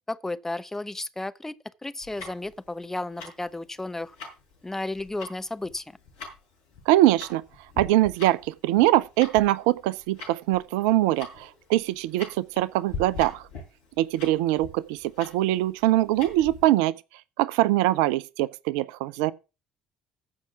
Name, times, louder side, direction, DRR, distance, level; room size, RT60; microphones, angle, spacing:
voice 1, 0.1-1.5 1.8-4.2 4.6-5.8, left 2 dB, 15° left, 0.9 m, -33 dB
Tick-tock, 2.0-16.6, left 4 dB, 75° left, 5.8 m, -42 dB
voice 2, 6.9-7.4 7.8-13.5 14.0-16.9 17.4-19.3, right 15 dB, 75° right, 0.5 m, -23 dB
14.5 x 5.6 x 5.9 m
hypercardioid pair, 55°, 3 cm